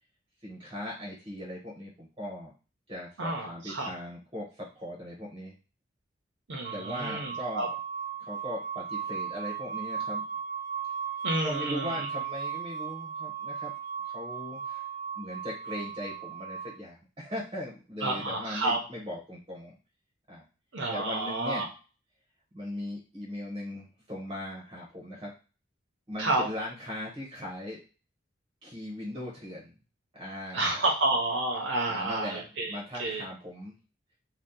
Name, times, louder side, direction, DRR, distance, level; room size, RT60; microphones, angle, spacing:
voice 1, 0.4-2.5 2.9-5.5 6.7-7.7 8.2-10.2 11.4-13.7 14.1-14.9 15.1-19.8 20.3-20.4 20.9-21.7 22.5-25.3 26.1-27.8 28.6-29.7 30.1-30.9 31.9-33.7, left 1 dB, 25° right, -3 dB, 0.9 m, -39 dB
voice 2, 3.2-3.9 6.5-7.7 11.2-12.1 18.0-18.8 20.7-21.7 26.2-26.5 30.5-33.2, right 2 dB, 65° right, 0 dB, 0.8 m, -30 dB
sound 1, 6.6-16.8, right 7 dB, 45° right, 0.3 m, -36 dB
2.8 x 2.3 x 3.6 m, 0.33 s
head